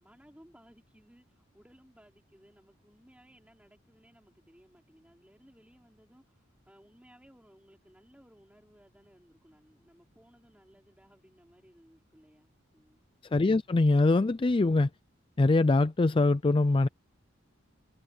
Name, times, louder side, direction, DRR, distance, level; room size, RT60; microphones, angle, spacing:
voice 1, 0.0-13.0, equal, 5° right, 5.1 m, -60 dB
voice 2, 13.3-14.9 15.4-16.9, left 2 dB, 25° left, 0.4 m, -23 dB
head